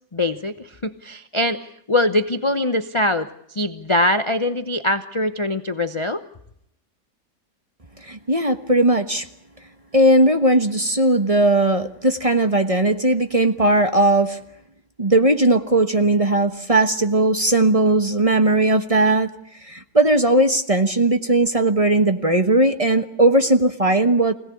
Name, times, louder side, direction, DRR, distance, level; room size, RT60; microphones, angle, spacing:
voice 1, 0.1-6.2, left 1 dB, 25° left, 9 dB, 0.6 m, -23 dB
voice 2, 8.0-9.3 9.9-14.4 15.0-19.3 19.6-24.3, right 1 dB, 25° right, 8 dB, 1.1 m, -18 dB
25.0 x 17.5 x 8.5 m, 0.77 s
omnidirectional pair, 1.7 m